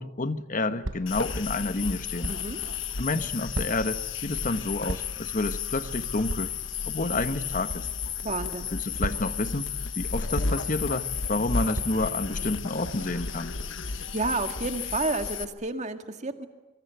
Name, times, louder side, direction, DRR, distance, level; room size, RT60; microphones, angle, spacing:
voice 1, 0.0-2.3 3.0-6.5 6.9-7.9 8.7-9.7 10.0-13.5, left 2 dB, 45° left, 11 dB, 1.3 m, -29 dB
sound 1, 0.8-1.2 2.2-2.5 3.5-4.0 4.9-5.2 6.3-6.5 7.7-7.9 9.0-9.4 10.3-10.7 11.7-12.0, right 1 dB, 90° right, 1.2 m, -34 dB
sound 2, 1.1-15.4, left 5 dB, 80° left, 1.3 m, -33 dB
voice 2, 2.3-2.6 8.2-8.7 14.1-16.5, right 3 dB, 40° right, 7 dB, 2.0 m, -30 dB
26.5 x 24.0 x 9.4 m, 1.1 s
head